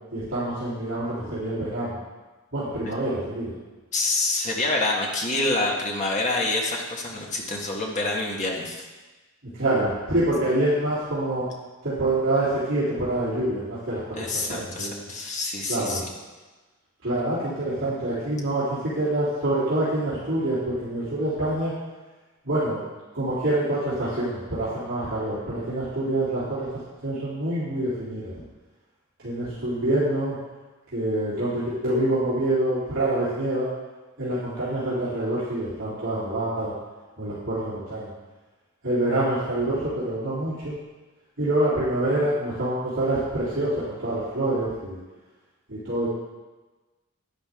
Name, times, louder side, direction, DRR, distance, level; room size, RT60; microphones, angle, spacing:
voice 1, 0.1-2.0 2.5-3.5 9.4-11.5 11.8-14.1 14.5-15.0 15.7-16.0 17.0-21.7 22.4-22.8 23.1-26.7 27.0-28.3 29.2-30.4 30.9-33.7 34.2-36.7 37.2-38.1 38.8-40.7 41.4-45.0 45.7-46.1, right 1 dB, 60° right, -12 dB, 3.5 m, -26 dB
voice 2, 3.9-8.9 14.2-16.0, left 2 dB, 35° left, -2 dB, 1.8 m, -27 dB
11.5 x 9.8 x 3.8 m, 1.2 s
head